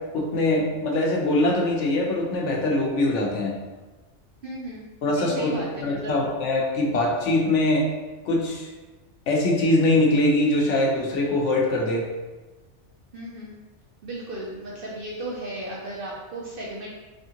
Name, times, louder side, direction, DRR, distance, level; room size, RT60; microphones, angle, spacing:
voice 1, 0.1-3.5 5.0-5.5 5.8-7.8 8.3-8.7 9.3-12.0, left 2 dB, 85° left, -1 dB, 1.1 m, -22 dB
voice 2, 4.4-4.9 5.1-6.2 13.1-13.6 14.0-16.9, right 1 dB, 55° right, -4 dB, 0.8 m, -35 dB
3.5 x 3.5 x 2.8 m, 1.2 s
omnidirectional pair, 1.2 m